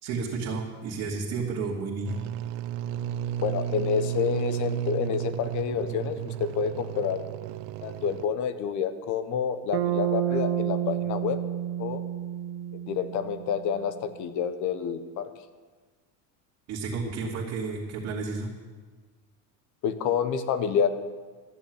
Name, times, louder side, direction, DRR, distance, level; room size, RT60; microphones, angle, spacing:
voice 1, 0.0-2.2 16.7-18.5, right 4 dB, 50° right, -7 dB, 2.8 m, -31 dB
sound 1, 2.0-8.2, right 11 dB, 70° right, 0.6 m, -33 dB
voice 2, 3.4-7.2 7.8-11.4 11.8-12.0 12.9-15.3 19.8-20.9, left 7 dB, 50° left, 11 dB, 1.2 m, -28 dB
Bass guitar, 9.7-13.8, right 11 dB, 90° right, 1.4 m, -30 dB
13.5 x 7.0 x 9.6 m, 1.4 s
cardioid pair, 140°, 38 cm